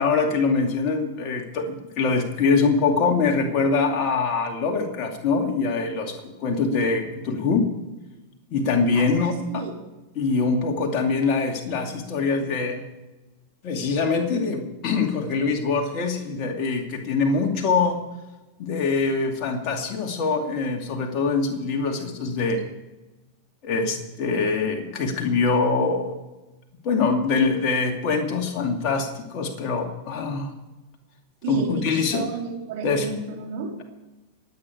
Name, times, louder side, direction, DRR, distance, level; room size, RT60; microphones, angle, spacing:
voice 1, 0.0-7.7 8.5-9.6 10.2-12.8 13.6-18.0 18.6-22.6 23.6-26.2 26.8-30.5 31.5-32.3 32.8-33.1, left 4 dB, 40° left, 3 dB, 2.5 m, -24 dB
voice 2, 8.9-9.8 31.4-33.8, right 4 dB, 50° right, -1 dB, 3.6 m, -33 dB
24.0 x 8.7 x 4.8 m, 1.1 s
figure-of-eight pair, 90°, 0 cm